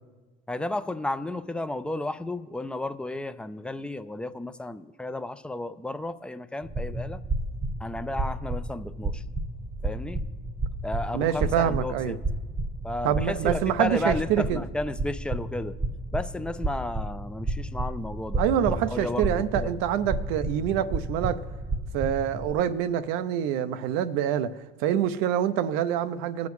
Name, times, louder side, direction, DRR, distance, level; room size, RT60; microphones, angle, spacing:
voice 1, 0.5-7.2 7.8-9.2 9.8-10.2 10.8-12.2 12.8-15.8 16.1-18.4 18.9-19.7, left 2 dB, 5° left, 12 dB, 0.4 m, -33 dB
sound 1, 6.6-22.5, right 2 dB, 20° right, 0.9 m, -32 dB
voice 2, 11.1-12.2 13.0-14.6 18.4-21.4 21.9-24.5 24.8-26.5, right 10 dB, 80° right, 13 dB, 0.5 m, -26 dB
20.0 x 7.1 x 3.2 m, 1.3 s
supercardioid pair, 80°, 21 cm